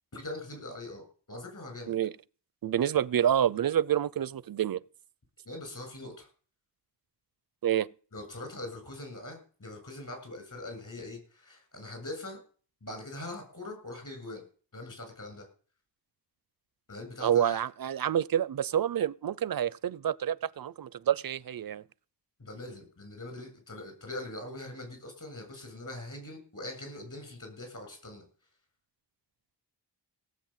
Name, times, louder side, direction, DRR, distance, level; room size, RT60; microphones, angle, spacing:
voice 1, 0.1-2.0 5.4-6.3 8.1-12.4 12.8-14.4 14.7-15.5 16.9-17.6 22.4-28.3, left 2 dB, 45° left, 7.6 m, -42 dB
voice 2, 2.6-4.8 7.6-7.9 17.2-21.8, right 10 dB, 55° right, 0.6 m, -28 dB
17.5 x 8.0 x 7.4 m
wide cardioid pair, 110°, 42 cm